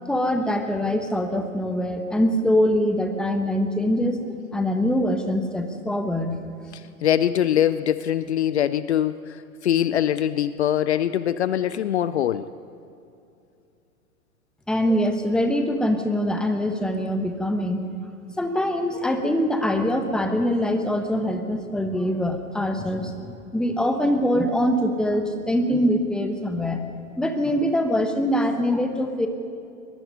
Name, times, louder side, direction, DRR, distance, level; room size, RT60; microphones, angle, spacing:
voice 1, 0.1-4.2 4.5-6.4 14.7-17.8 18.4-26.8 27.2-29.3, equal, ahead, 6 dB, 1.2 m, -23 dB
voice 2, 6.7-12.5, left 10 dB, 50° left, 15 dB, 0.7 m, -23 dB
22.0 x 21.5 x 5.5 m, 2.6 s
figure-of-eight pair, 105°, 43 cm